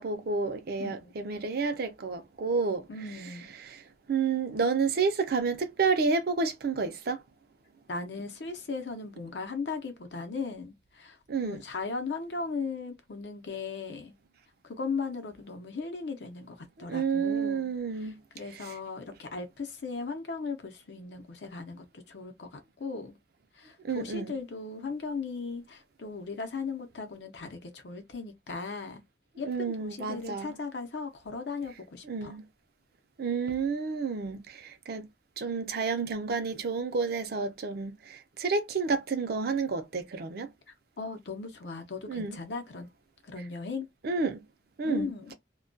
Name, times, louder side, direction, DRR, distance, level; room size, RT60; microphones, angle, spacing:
voice 1, 0.0-2.8 3.7-3.8 4.1-7.2 11.3-11.6 16.9-18.2 23.9-24.3 29.5-30.5 32.1-32.4 33.2-34.4 34.9-35.0 35.4-37.9 38.4-40.5 42.1-42.4 44.0-44.4 44.8-45.1, right 4 dB, 60° right, 0.5 m, -30 dB
voice 2, 0.8-1.2 2.9-3.5 7.9-11.2 11.4-14.1 14.6-23.2 23.6-29.0 29.4-32.3 41.0-42.9 43.2-43.9 44.8-45.3, left 4 dB, 75° left, 0.6 m, -37 dB
2.2 x 2.2 x 2.5 m
head